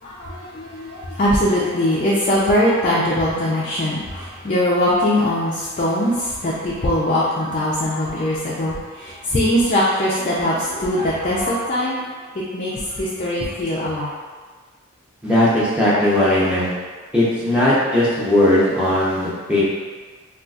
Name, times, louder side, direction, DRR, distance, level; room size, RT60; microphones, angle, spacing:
voice 1, 0.0-12.0 12.3-14.1, left 1 dB, 35° left, -7 dB, 0.4 m, -21 dB
voice 2, 15.2-16.7 17.1-19.6, left 1 dB, 5° right, -9 dB, 0.7 m, -18 dB
3.8 x 2.4 x 2.3 m, 1.5 s
head